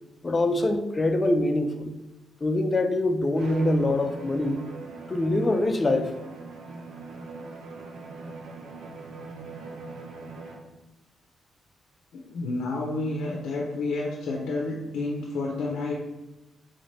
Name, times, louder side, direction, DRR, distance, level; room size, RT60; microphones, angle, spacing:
voice 1, 0.2-1.9 2.4-4.6 5.1-6.1, left 2 dB, 30° left, 6 dB, 0.5 m, -24 dB
Bowed string instrument, 3.3-10.7, right 3 dB, 80° right, 0.6 m, -40 dB
voice 2, 12.1-16.2, left 2 dB, 80° left, -1 dB, 0.6 m, -30 dB
3.8 x 2.6 x 3.2 m, 1.0 s
cardioid pair, 80°, 0 cm